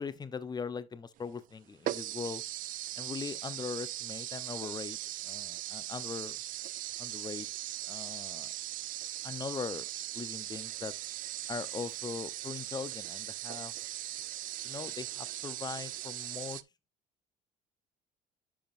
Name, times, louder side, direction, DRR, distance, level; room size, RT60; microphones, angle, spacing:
voice 1, 0.0-2.4 3.0-5.0 5.2-6.4 7.0-7.5 7.9-8.5 9.2-9.9 10.1-10.9 11.5-13.7 14.6-16.6, left 5 dB, 25° left, 0.7 m, -40 dB
sound 1, 1.2-1.3 1.8-16.6, right 14 dB, 55° right, 0.4 m, -39 dB
10.5 x 5.1 x 2.5 m
supercardioid pair, 90°, 17 cm